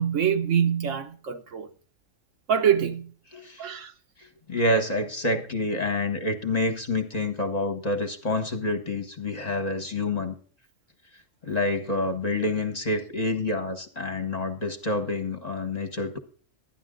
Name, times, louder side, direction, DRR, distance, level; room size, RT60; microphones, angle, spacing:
voice 1, 0.0-1.7 2.5-3.1 3.6-3.9, right 8 dB, 70° right, 1.3 m, -24 dB
voice 2, 3.3-3.6 4.2-10.4 11.4-16.2, left 2 dB, 35° left, 1.2 m, -28 dB
12.0 x 10.5 x 3.7 m
omnidirectional pair, 1.3 m